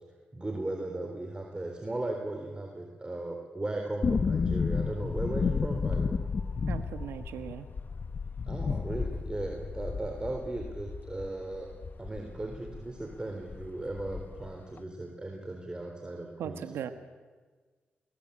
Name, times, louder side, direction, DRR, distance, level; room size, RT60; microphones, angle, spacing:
voice 1, 0.3-6.2 8.5-11.7 12.0-16.7, right 2 dB, 20° right, 2 dB, 3.9 m, -37 dB
sound 1, 4.0-12.9 13.1-13.2 13.5-14.5 14.8-14.9, left 5 dB, 50° left, 1.3 m, -32 dB
voice 2, 6.7-7.6 16.4-16.9, right 9 dB, 90° right, 9 dB, 1.3 m, -38 dB
21.5 x 20.5 x 8.6 m, 1.4 s
cardioid pair, 60°, 4 cm